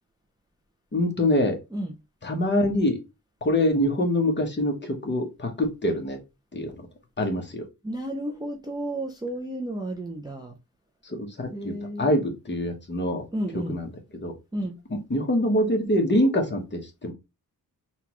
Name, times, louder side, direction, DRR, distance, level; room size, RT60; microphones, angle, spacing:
voice 1, 0.9-1.6 2.2-3.0 3.4-6.2 6.5-6.7 7.2-7.6 11.1-11.7 12.0-13.3 13.7-13.9 14.2-14.3 15.1-17.1, left 1 dB, 30° left, 1.0 m, -24 dB
voice 2, 7.8-10.6 11.5-12.1 13.3-13.8 14.5-14.8, right 1 dB, 10° right, 0.5 m, -32 dB
5.8 x 2.3 x 3.0 m
wide cardioid pair, 160°, 38 cm